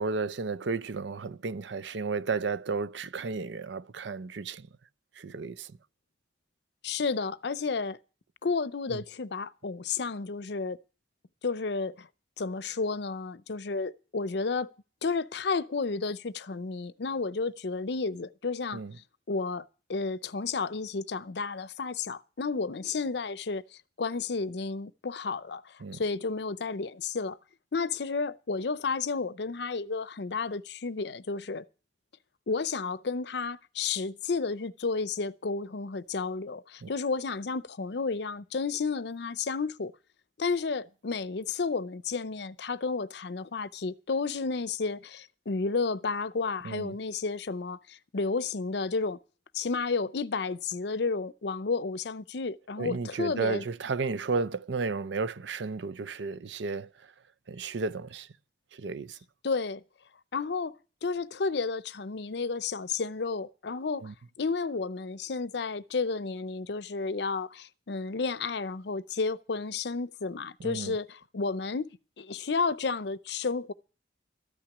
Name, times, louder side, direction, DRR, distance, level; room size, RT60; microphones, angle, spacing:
voice 1, 0.0-4.7 5.2-5.8 8.9-9.0 18.7-18.9 25.8-26.0 36.8-36.9 46.6-47.0 52.8-56.9 57.5-58.3 58.7-59.2 64.0-64.1 70.6-71.0, right 4 dB, 75° right, 0.6 m, -33 dB
voice 2, 6.8-8.0 8.4-10.8 11.4-12.1 12.4-14.7 15.0-18.8 19.3-23.6 24.0-27.4 27.7-31.6 32.5-39.9 40.4-49.2 49.5-53.6 59.4-59.8 60.3-60.7 61.0-64.1 64.4-71.9 72.2-73.7, left 4 dB, 65° left, 0.6 m, -32 dB
13.5 x 6.0 x 9.8 m
head